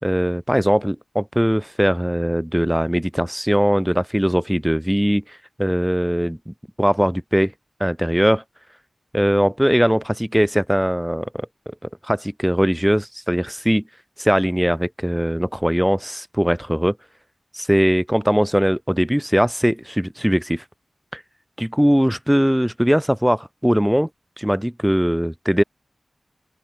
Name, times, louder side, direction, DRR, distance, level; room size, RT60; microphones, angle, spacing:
voice 1, 0.0-5.2 5.6-7.5 7.8-8.4 9.1-11.5 12.0-13.8 14.2-17.0 17.5-20.6 21.1-21.2 21.6-24.1 24.4-25.6, equal, 5° right, 2.7 m, -20 dB
open air
wide cardioid pair, 70°, 0 cm